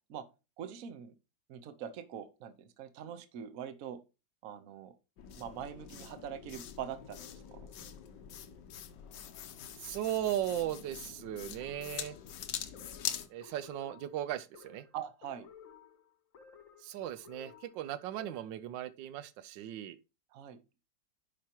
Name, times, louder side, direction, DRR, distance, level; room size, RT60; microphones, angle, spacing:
voice 1, 0.6-1.1 1.5-4.0 4.4-5.0 5.3-7.7 14.9-15.5 20.3-20.6, right 9 dB, 55° right, 1.1 m, -43 dB
sound 1, 5.2-13.3, left 9 dB, 75° left, 1.4 m, -44 dB
voice 2, 9.8-12.2 13.3-14.8 16.8-20.0, right 12 dB, 85° right, 1.3 m, -37 dB
sound 2, 11.6-18.6, left 7 dB, 55° left, 1.2 m, -56 dB
10.0 x 5.0 x 2.9 m
omnidirectional pair, 2.0 m